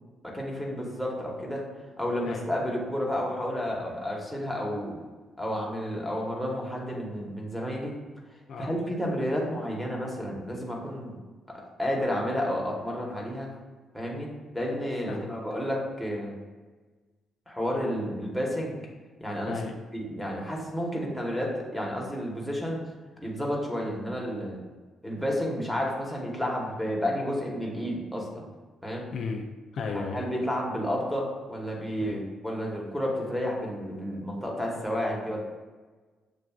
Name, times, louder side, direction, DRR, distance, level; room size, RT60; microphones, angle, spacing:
voice 1, 0.2-1.6 2.0-5.0 5.4-7.9 8.6-11.1 11.8-13.5 13.9-14.3 14.5-16.3 17.5-18.7 19.2-19.6 19.9-22.8 23.2-24.6 25.0-28.4 28.8-29.0 29.9-35.4, equal, ahead, -2 dB, 1.1 m, -31 dB
voice 2, 15.0-15.4 19.5-19.7 29.1-29.5 29.7-30.2 32.0-32.2, left 5 dB, 65° left, 2 dB, 0.4 m, -34 dB
6.7 x 2.4 x 2.3 m, 1.3 s
cardioid pair, 90°, 0 cm